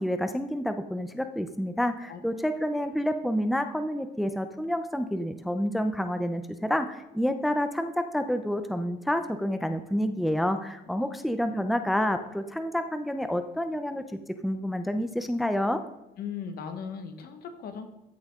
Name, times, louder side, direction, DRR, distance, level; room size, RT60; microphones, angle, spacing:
voice 1, 0.0-15.8, equal, ahead, 8 dB, 0.6 m, -29 dB
voice 2, 2.5-2.9 11.0-11.2 16.2-17.9, left 6 dB, 65° left, 8 dB, 1.3 m, -39 dB
14.0 x 6.4 x 3.7 m, 1.0 s
cardioid pair, 110°, 17 cm